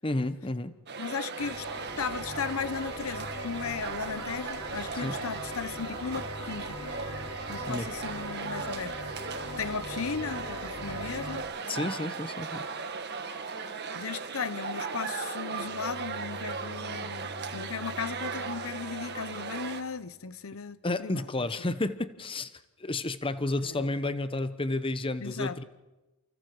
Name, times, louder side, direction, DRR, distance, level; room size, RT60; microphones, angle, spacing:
voice 1, 0.0-0.7 5.0-5.2 7.7-7.9 11.7-12.7 20.8-22.5 22.8-25.6, left 2 dB, 25° left, 1.0 m, -31 dB
sound 1, 0.9-19.8, right 5 dB, 50° right, 1.7 m, -37 dB
voice 2, 1.0-1.7 2.0-6.8 7.5-9.0 9.6-11.5 13.9-21.3 23.6-24.0 25.2-25.6, left 5 dB, 65° left, 0.7 m, -36 dB
sound 2, 1.4-11.4, left 1 dB, 85° left, 6.5 m, -41 dB
Bowed string instrument, 15.3-20.3, left 1 dB, 30° right, 4.7 m, -48 dB
29.5 x 28.5 x 4.7 m
head